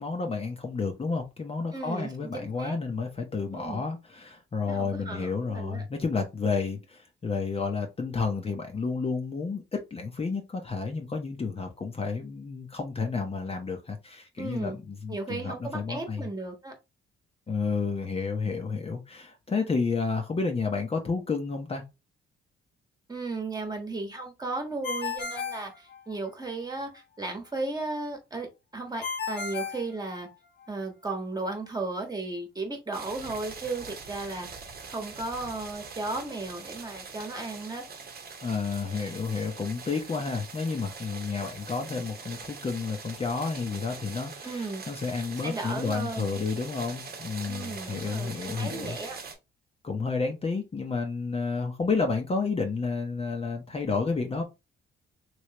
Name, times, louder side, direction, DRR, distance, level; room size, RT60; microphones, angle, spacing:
voice 1, 0.0-16.3 17.5-21.8 38.4-49.0 49.8-54.4, left 4 dB, 30° left, 0.8 m, -31 dB
voice 2, 1.7-2.8 3.5-3.8 4.7-5.8 14.4-14.8 15.1-16.7 23.1-28.5 28.7-30.3 30.7-34.5 34.9-37.8 44.4-44.8 45.4-46.4 47.5-49.2, right 3 dB, 20° right, 1.3 m, -35 dB
Ringtone, 24.8-26.5 29.0-30.6, left 6 dB, 60° left, 1.0 m, -34 dB
sound 1, 32.9-49.3, right 5 dB, 50° right, 1.0 m, -43 dB
3.2 x 3.1 x 2.9 m
cardioid pair, 90°, 20 cm